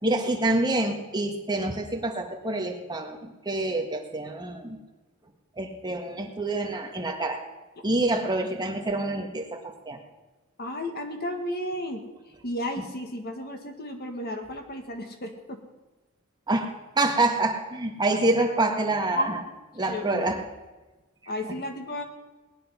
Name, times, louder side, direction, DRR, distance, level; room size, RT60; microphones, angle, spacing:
voice 1, 0.0-4.8 5.6-7.4 7.8-10.0 12.8-12.9 16.5-19.4 19.7-20.4, right 2 dB, 20° right, 3 dB, 1.7 m, -27 dB
voice 2, 10.6-15.6 19.1-19.4 19.9-20.3 21.3-22.0, left 1 dB, 50° left, 4 dB, 1.9 m, -33 dB
19.5 x 10.0 x 5.8 m, 1.2 s
head